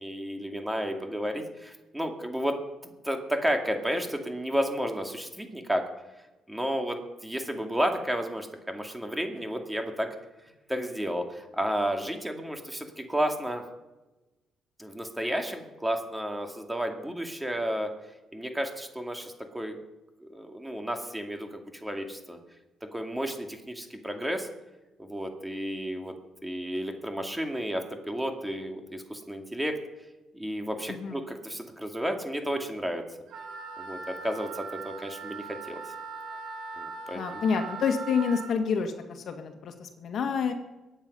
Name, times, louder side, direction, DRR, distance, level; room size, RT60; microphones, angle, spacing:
voice 1, 0.0-5.9 6.5-10.1 10.7-13.6 14.8-17.9 18.3-19.8 20.2-22.4 22.9-24.5 25.0-26.1 26.4-29.8 30.3-33.1 33.8-35.8 36.8-37.4, equal, 5° right, 4 dB, 2.2 m, -32 dB
Wind instrument woodwind instrument, 33.3-38.5, right 4 dB, 80° right, 4.2 m, -40 dB
voice 2, 37.2-40.5, left 6 dB, 60° left, 6 dB, 1.9 m, -28 dB
22.5 x 9.1 x 5.5 m, 1.1 s
cardioid pair, 90°, 0 cm